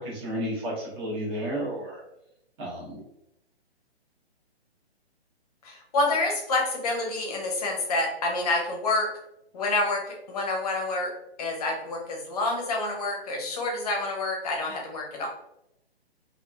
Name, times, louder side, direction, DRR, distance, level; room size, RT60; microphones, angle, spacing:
voice 1, 0.0-2.0 2.6-3.0, equal, 25° right, -4 dB, 0.9 m, -32 dB
voice 2, 5.6-9.1 9.5-11.1 11.4-15.3, left 2 dB, 35° left, 1 dB, 0.7 m, -28 dB
2.7 x 2.5 x 2.2 m, 0.81 s
figure-of-eight pair, 135°, 32 cm